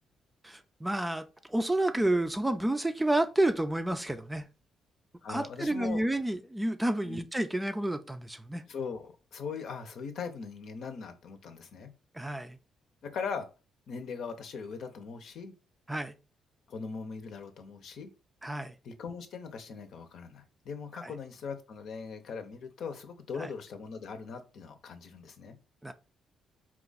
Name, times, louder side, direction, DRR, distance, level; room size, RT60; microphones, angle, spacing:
voice 1, 0.4-4.5 5.3-8.6 12.1-12.6 15.9-16.2 18.4-18.7 21.0-21.1 23.4-23.5 25.8-25.9, right 1 dB, 10° right, 0.5 m, -30 dB
voice 2, 5.2-6.1 7.0-7.2 8.7-11.9 13.0-13.5 13.9-15.5 16.7-18.1 18.8-25.6, left 5 dB, 70° left, 0.8 m, -40 dB
4.4 x 2.4 x 4.0 m
cardioid pair, 90°, 0 cm